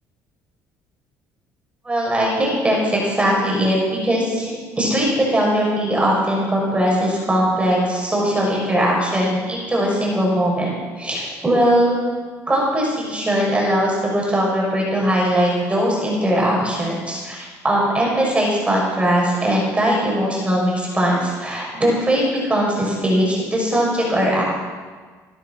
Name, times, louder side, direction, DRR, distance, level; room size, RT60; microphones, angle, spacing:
voice 1, 1.8-12.0 12.5-24.4, equal, 15° right, -3 dB, 6.5 m, -20 dB
19.5 x 12.0 x 5.8 m, 1.5 s
cardioid pair, 100°, 7 cm